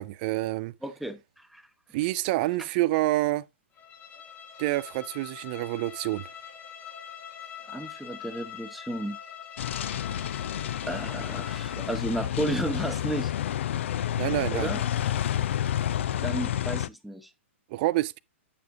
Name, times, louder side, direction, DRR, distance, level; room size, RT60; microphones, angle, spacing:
voice 1, 0.0-0.7 1.9-3.4 4.6-6.2 14.2-14.7 17.7-18.2, right 17 dB, 45° right, 0.5 m, -27 dB
voice 2, 0.8-1.6 7.7-9.2 10.8-13.3 14.5-14.8 16.2-17.3, right 1 dB, ahead, 0.9 m, -33 dB
Bowed string instrument, 3.7-12.1, left 8 dB, 25° left, 1.3 m, -44 dB
sound 1, 9.6-16.9, left 11 dB, 65° left, 0.5 m, -30 dB
9.4 x 7.0 x 2.6 m
hypercardioid pair, 130°, 7 cm